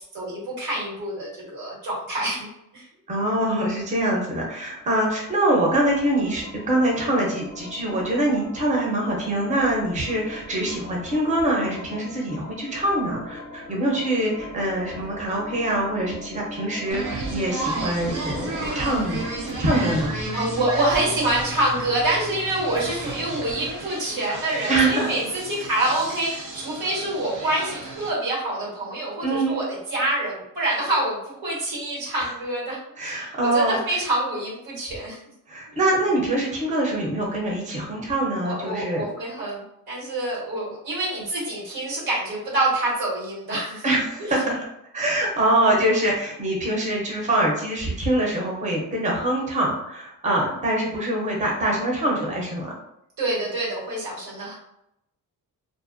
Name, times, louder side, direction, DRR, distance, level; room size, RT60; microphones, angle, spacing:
voice 1, 0.1-2.8 20.3-35.2 38.4-43.8 44.2-44.3 53.2-54.5, right 1 dB, 90° right, -6 dB, 1.3 m, -26 dB
voice 2, 3.1-19.2 19.6-20.1 24.7-25.1 29.2-29.6 32.2-32.3 33.0-33.9 35.5-39.0 43.8-44.6 44.9-52.7, right 1 dB, 20° right, -3 dB, 0.6 m, -24 dB
sound 1, 5.7-23.7, left 1 dB, 25° left, 0.6 m, -39 dB
sound 2, 16.9-28.1, right 3 dB, 60° right, 0.7 m, -33 dB
2.4 x 2.1 x 2.5 m, 0.80 s
cardioid pair, 130°, 35 cm